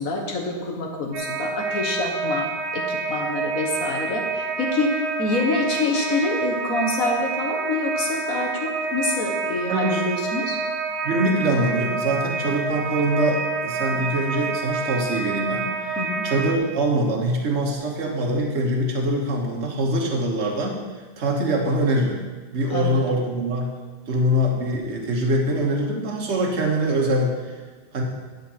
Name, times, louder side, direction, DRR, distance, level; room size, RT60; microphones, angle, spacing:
voice 1, 0.0-2.5 2.7-10.6 16.0-16.3 22.7-23.0, left 3 dB, 50° left, 0 dB, 1.3 m, -26 dB
sound 1, 1.1-16.6, right 4 dB, 90° right, 1.7 m, -28 dB
voice 2, 9.7-10.0 11.0-20.8 21.2-22.2 22.5-23.7 24.1-27.6 27.9-28.0, right 1 dB, 40° right, -1 dB, 1.4 m, -23 dB
10.0 x 6.6 x 4.3 m, 1.4 s
omnidirectional pair, 2.2 m